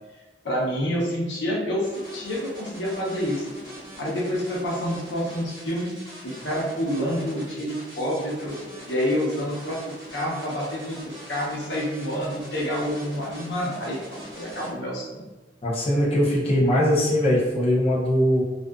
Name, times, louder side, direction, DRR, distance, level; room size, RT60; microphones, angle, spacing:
voice 1, 0.4-3.5 4.0-5.9 6.2-8.6 8.9-15.2, equal, 85° left, -4 dB, 0.8 m, -28 dB
sound 1, 1.8-14.7, right 1 dB, 20° right, 1.0 m, -43 dB
voice 2, 15.6-18.4, equal, 35° left, -6 dB, 0.5 m, -21 dB
2.4 x 2.4 x 2.3 m, 1.2 s
head